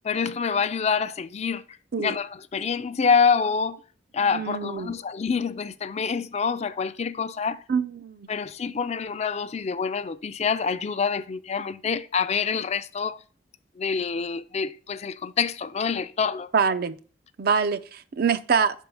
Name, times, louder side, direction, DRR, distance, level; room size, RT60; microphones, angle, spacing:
voice 1, 0.0-1.6 2.0-3.8 4.1-7.6 8.3-13.2 13.8-16.5, left 5 dB, 35° left, 0.4 m, -26 dB
voice 2, 4.3-4.9 7.7-8.3 16.5-17.0 17.4-18.8, right 5 dB, 55° right, 0.5 m, -25 dB
5.5 x 4.5 x 5.2 m
head